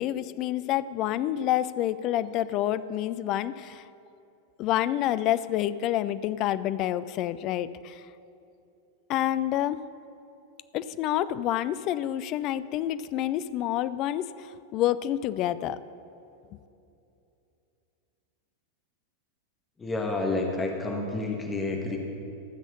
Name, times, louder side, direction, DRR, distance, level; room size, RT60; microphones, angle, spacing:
voice 1, 0.0-3.8 4.6-8.0 9.1-9.8 10.7-15.8, left 12 dB, 40° left, 15 dB, 0.4 m, -28 dB
voice 2, 19.8-22.0, left 2 dB, 15° left, 1 dB, 1.4 m, -29 dB
14.5 x 6.2 x 6.8 m, 2.8 s
figure-of-eight pair, 90°, 0 cm